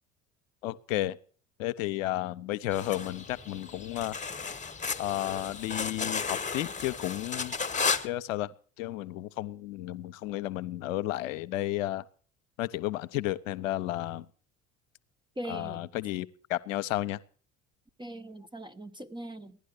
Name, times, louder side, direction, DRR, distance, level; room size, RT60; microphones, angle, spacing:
voice 1, 0.6-1.2 1.6-4.2 5.0-7.6 8.0-8.5 8.8-12.0 12.6-14.3 15.5-17.2, left 15 dB, 75° left, 0.8 m, -32 dB
sound 1, 2.7-8.1, left 5 dB, 20° left, 1.1 m, -34 dB
voice 2, 15.4-15.8 18.0-19.6, right 1 dB, 10° right, 0.9 m, -40 dB
16.0 x 11.0 x 6.6 m
hypercardioid pair, 65°, 39 cm